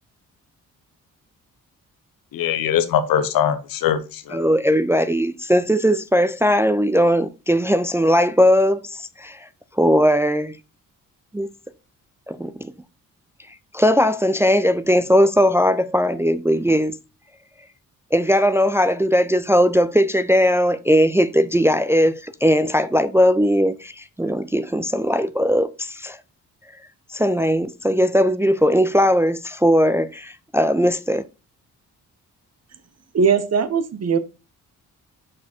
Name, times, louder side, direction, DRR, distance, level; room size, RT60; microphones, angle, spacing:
voice 1, 2.3-4.4, left 9 dB, 85° left, 0.9 m, -21 dB
voice 2, 4.3-9.5 9.8-10.6 11.3-11.5 12.3-12.7 13.7-17.0 18.1-26.2 27.1-31.2, equal, 10° right, 0.4 m, -19 dB
voice 3, 33.1-34.2, right 6 dB, 45° right, 1.0 m, -19 dB
6.0 x 4.7 x 4.4 m
cardioid pair, 65°, 34 cm